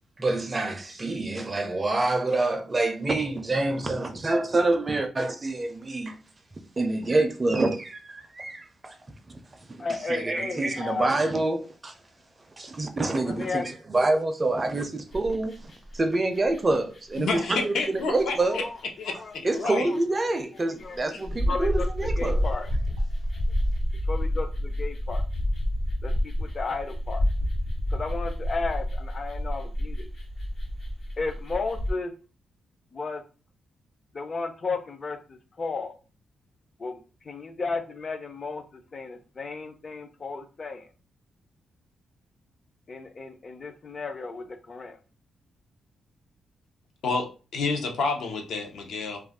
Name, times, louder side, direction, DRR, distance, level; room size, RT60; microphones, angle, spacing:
voice 1, 0.2-6.2 6.8-9.0 9.3-9.4 9.7-11.9 12.6-18.6 19.4-22.4, right 2 dB, 25° right, 0.4 m, -27 dB
voice 2, 9.8-11.2 13.4-13.7 18.5-18.7 19.1-19.4 19.6-19.7 20.8-21.0 21.5-21.9 22.2-22.7 24.1-25.2 26.0-27.2 27.9-30.1 31.2-32.1 32.9-33.2 34.1-35.9 36.8-37.0 37.3-40.9 42.9-45.0, left 4 dB, 35° left, 0.4 m, -33 dB
sound 1, 15.1-16.0 16.3-31.9, equal, 55° left, 1.1 m, -29 dB
voice 3, 17.2-18.6 19.0-19.1 19.5-19.9 21.1-21.2 47.0-47.3 47.5-49.2, left 4 dB, 80° left, 0.7 m, -29 dB
2.4 x 2.3 x 3.5 m
cardioid pair, 130°, 0 cm